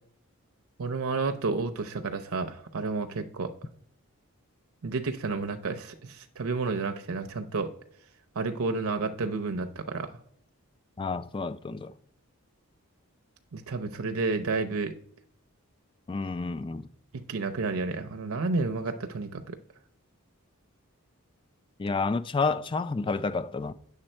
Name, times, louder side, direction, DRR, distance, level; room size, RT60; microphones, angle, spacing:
voice 1, 0.8-3.5 4.8-7.7 8.4-10.1 13.5-14.9 17.3-19.6, right 3 dB, 75° right, 0.6 m, -31 dB
voice 2, 11.0-11.9 16.1-16.9 21.8-23.7, left 4 dB, 20° left, 0.3 m, -30 dB
8.9 x 7.0 x 4.3 m
head